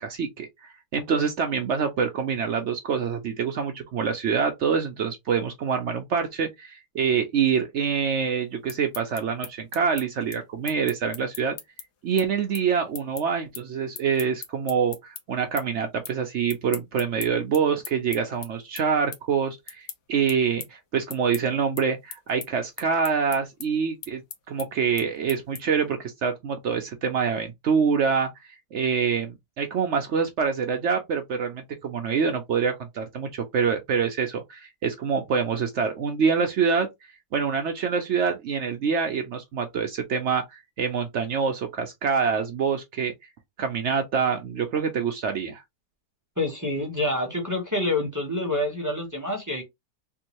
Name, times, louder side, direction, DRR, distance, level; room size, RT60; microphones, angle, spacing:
voice 1, 0.0-11.5 12.0-24.2 24.5-28.3 28.7-36.9 37.3-43.1 43.6-45.6, right 6 dB, 70° right, 0.6 m, -26 dB
sound 1, 8.5-15.2 15.6-16.2 16.5-25.9, left 8 dB, 75° left, 1.3 m, -40 dB
voice 2, 46.4-49.6, left 1 dB, 15° right, 0.8 m, -27 dB
3.5 x 2.6 x 2.9 m
omnidirectional pair, 1.8 m